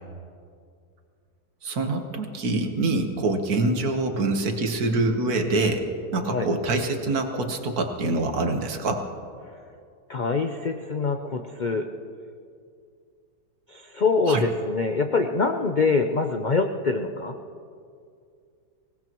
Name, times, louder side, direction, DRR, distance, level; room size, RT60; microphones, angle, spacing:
voice 1, 1.6-5.8 6.1-9.0 14.3-14.4, right 2 dB, 70° right, 4 dB, 1.8 m, -25 dB
voice 2, 10.1-11.8 13.7-17.3, left 4 dB, 55° left, 5 dB, 0.5 m, -24 dB
24.5 x 18.5 x 3.0 m, 2.3 s
omnidirectional pair, 1.7 m